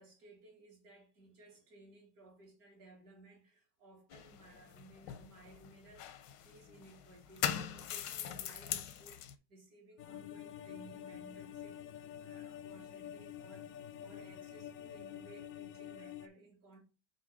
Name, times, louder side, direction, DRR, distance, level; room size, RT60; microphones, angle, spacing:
voice 1, 0.0-13.7 14.0-16.8, right 2 dB, 55° right, 2.7 m, -59 dB
sound 1, 4.1-9.3, left 10 dB, 85° left, 1.3 m, -41 dB
sound 2, 10.0-16.3, left 10 dB, 70° left, 0.8 m, -48 dB
6.8 x 2.8 x 5.8 m
omnidirectional pair, 1.9 m